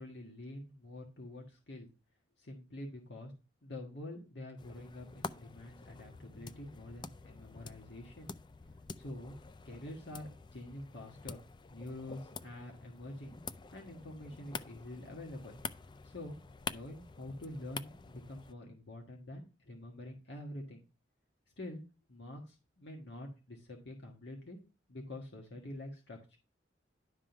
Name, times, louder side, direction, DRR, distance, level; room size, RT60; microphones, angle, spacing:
voice 1, 0.0-1.9 2.4-3.3 3.6-8.3 9.0-9.3 9.7-11.4 11.7-13.3 13.7-15.6 16.0-16.4 16.7-20.8 21.6-21.8 22.1-24.6 24.9-26.4, left 1 dB, 70° left, 0 dB, 1.6 m, -46 dB
sound 1, 4.6-18.5, left 4 dB, 25° left, 0.4 m, -48 dB
11.0 x 3.7 x 5.9 m, 0.32 s
head